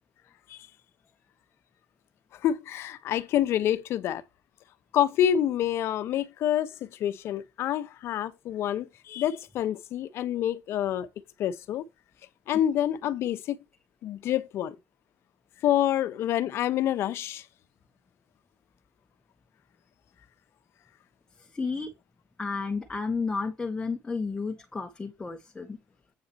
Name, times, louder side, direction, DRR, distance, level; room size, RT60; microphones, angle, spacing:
voice 1, 2.4-4.2 4.9-11.1 11.4-11.8 12.5-13.6 14.0-14.7 15.6-17.4, left 11 dB, 70° left, 1.1 m, -27 dB
voice 2, 21.5-21.9 22.4-25.8, left 4 dB, 20° left, 1.9 m, -32 dB
8.8 x 5.5 x 4.4 m
cardioid pair, 105°, 5 cm